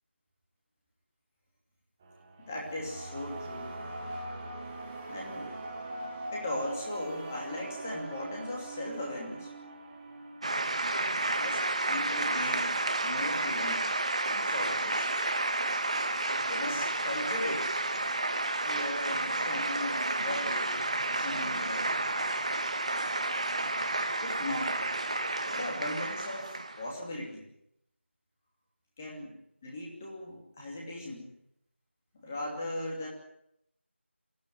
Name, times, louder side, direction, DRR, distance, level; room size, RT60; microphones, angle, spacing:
sound 1, 2.0-12.2, right 1 dB, 5° right, 0.9 m, -42 dB
voice 1, 2.5-3.7 5.1-5.5 6.3-9.5 11.3-11.6 11.9-13.9 14.2-15.1 16.5-17.7 18.6-20.8 21.1-22.0 24.2-24.8 25.5-27.5 29.0-29.4 29.6-31.3 32.2-33.1, left 1 dB, 10° left, -2 dB, 2.8 m, -38 dB
sound 2, 10.4-26.9, right 2 dB, 30° right, 1.4 m, -31 dB
23.5 x 16.0 x 9.3 m, 0.76 s
figure-of-eight pair, 175°, 7 cm